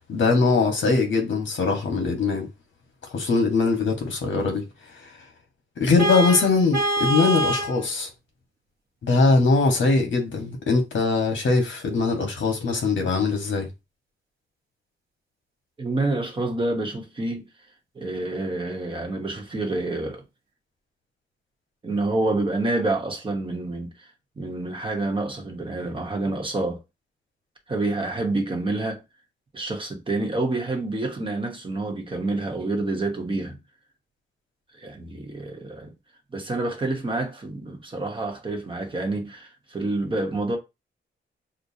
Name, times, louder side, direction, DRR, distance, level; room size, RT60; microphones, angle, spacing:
voice 1, 0.1-2.5 3.1-4.6 5.0-5.1 5.8-8.1 9.0-13.7, left 3 dB, 75° left, 1.3 m, -21 dB
Vehicle horn car horn honking, 6.0-7.8, right 1 dB, 55° right, 0.9 m, -24 dB
voice 2, 15.8-17.4 17.9-20.2 21.8-24.1 24.4-26.8 27.7-29.0 29.5-33.6 34.8-35.9 36.3-40.6, right 2 dB, 25° right, 1.0 m, -28 dB
6.3 x 2.2 x 2.7 m
wide cardioid pair, 170°, 20 cm